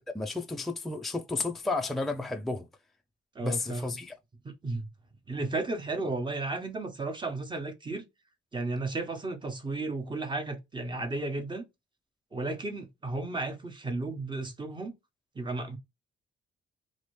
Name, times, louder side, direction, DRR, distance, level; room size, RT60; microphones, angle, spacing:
voice 1, 0.1-2.7 3.4-4.2, left 3 dB, ahead, 0.4 m, -32 dB
voice 2, 3.3-4.0 4.4-4.9 5.3-8.0 8.5-11.6 12.3-14.9 15.3-15.8, right 2 dB, 25° right, 1.0 m, -34 dB
2.9 x 2.7 x 3.1 m
cardioid pair, 90°, 20 cm